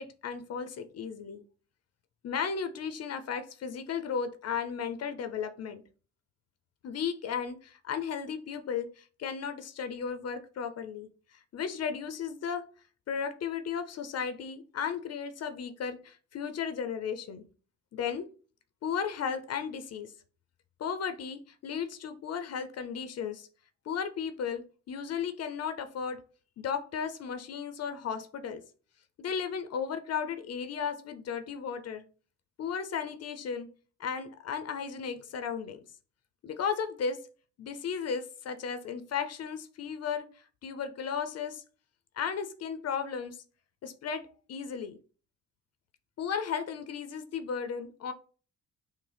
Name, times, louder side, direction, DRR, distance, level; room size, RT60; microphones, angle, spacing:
voice 1, 0.0-1.4 2.2-5.8 6.8-12.7 13.1-17.4 17.9-18.3 18.8-20.1 20.8-23.5 23.9-26.2 26.6-28.6 29.2-32.0 32.6-33.7 34.0-35.8 36.4-37.2 37.6-41.6 42.2-43.4 43.8-45.0 46.2-48.1, left 7 dB, 55° left, 9 dB, 0.6 m, -35 dB
6.1 x 2.0 x 3.4 m, 0.39 s
cardioid pair, 90°, 30 cm